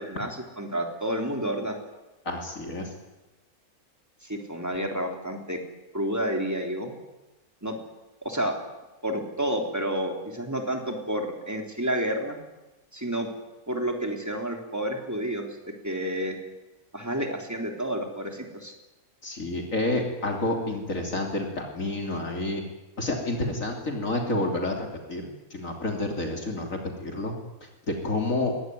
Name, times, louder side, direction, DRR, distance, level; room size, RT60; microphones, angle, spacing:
voice 1, 0.0-1.8 4.2-5.6 5.9-7.0 7.6-7.7 8.2-8.5 9.0-12.4 12.9-13.3 13.7-15.5 15.8-16.4 16.9-18.7, right 1 dB, 10° right, 2 dB, 3.5 m, -30 dB
voice 2, 2.3-2.9 19.2-22.6 23.0-27.3 28.0-28.5, left 2 dB, 60° left, 2 dB, 3.4 m, -29 dB
22.5 x 18.5 x 9.5 m, 1.1 s
omnidirectional pair, 1.5 m